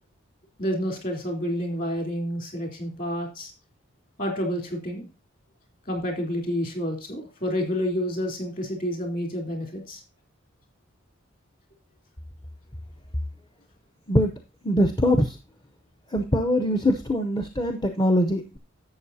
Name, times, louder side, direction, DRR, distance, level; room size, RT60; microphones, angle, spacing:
voice 1, 0.6-3.5 4.2-5.1 5.9-10.0, equal, 40° left, 4 dB, 3.6 m, -29 dB
voice 2, 14.6-15.4 16.1-18.6, equal, 20° left, 7 dB, 0.7 m, -22 dB
11.5 x 7.8 x 2.7 m, 0.30 s
head